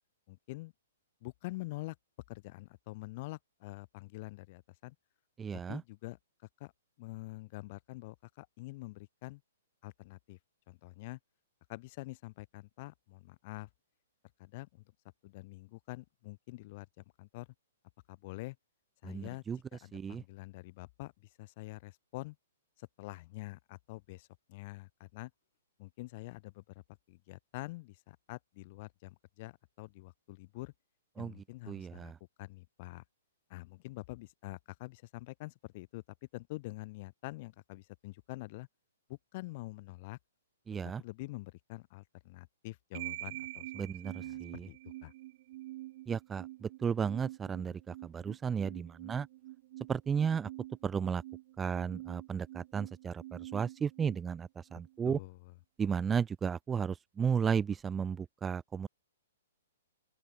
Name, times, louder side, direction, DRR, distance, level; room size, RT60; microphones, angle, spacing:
voice 1, 0.3-0.7 1.2-2.0 2.3-4.9 5.7-6.2 6.6-6.7 7.0-9.4 9.8-10.4 10.7-11.2 11.7-13.7 14.4-14.8 15.2-17.5 18.1-18.6 19.0-19.4 19.7-21.1 21.4-22.4 22.8-25.3 25.8-26.6 27.1-30.7 31.2-32.1 32.4-33.0 33.5-36.0 36.3-38.7 39.1-40.2 41.0-44.4 44.7-45.1 55.0-55.5, left 21 dB, 40° left, 6.4 m, -46 dB
voice 2, 5.4-5.8 19.0-19.6 19.9-20.2 31.2-31.3 31.7-32.2 40.7-41.0 43.8-44.7 46.1-49.3 49.9-50.5 50.8-51.2 51.6-55.2 55.8-58.9, right 7 dB, 15° right, 0.6 m, -34 dB
sound 1, 42.9-55.0, right 17 dB, 45° right, 2.5 m, -47 dB
open air
hypercardioid pair, 145°, 0 cm